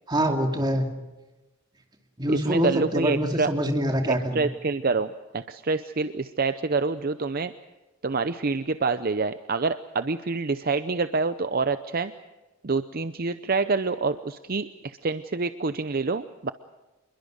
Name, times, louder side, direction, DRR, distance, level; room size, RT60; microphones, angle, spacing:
voice 1, 0.1-0.9 2.2-4.5, equal, 20° right, 4 dB, 2.6 m, -25 dB
voice 2, 2.3-3.5 4.1-7.5 8.0-12.1 12.6-16.5, right 4 dB, 45° right, 11 dB, 0.7 m, -27 dB
27.0 x 22.0 x 6.5 m, 1.1 s
head